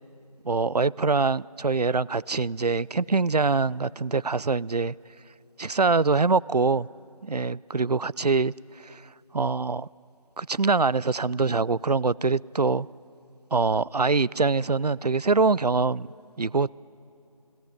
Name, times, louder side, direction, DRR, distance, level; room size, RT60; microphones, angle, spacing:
voice 1, 0.4-4.9 5.6-6.9 7.2-8.5 8.8-9.0 9.3-9.9 10.4-12.9 13.5-16.1 16.4-16.7, right 4 dB, 80° right, 23 dB, 0.5 m, -24 dB
30.0 x 17.5 x 10.0 m, 2.7 s
figure-of-eight pair, 180°, 20 cm